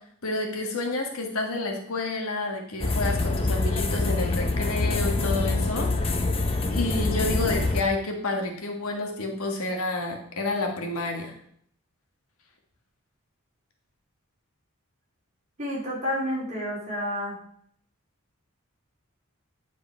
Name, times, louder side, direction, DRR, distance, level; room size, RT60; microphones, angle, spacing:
voice 1, 0.2-6.3 6.7-11.3, left 2 dB, 75° left, 2 dB, 1.5 m, -29 dB
sound 1, 2.8-7.8, left 2 dB, 25° left, 0.6 m, -25 dB
voice 2, 15.6-17.4, equal, 35° right, -6 dB, 3.4 m, -30 dB
9.2 x 5.2 x 4.5 m, 0.66 s
head